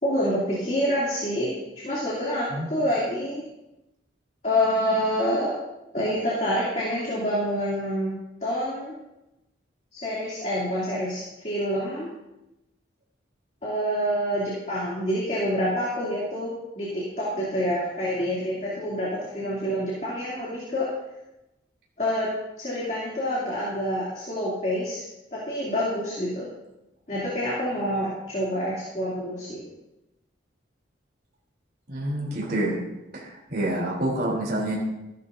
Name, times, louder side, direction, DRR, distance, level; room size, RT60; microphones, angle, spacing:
voice 1, 0.0-1.6 1.8-3.4 4.4-5.5 5.9-8.1 8.4-8.9 9.9-12.1 13.6-20.9 22.0-22.3 22.6-25.0 25.3-26.5 27.1-29.6, equal, 40° left, -7 dB, 2.8 m, -27 dB
voice 2, 31.9-32.8 33.1-34.8, right 1 dB, 55° right, -4 dB, 3.4 m, -27 dB
14.5 x 12.0 x 2.7 m, 0.93 s
head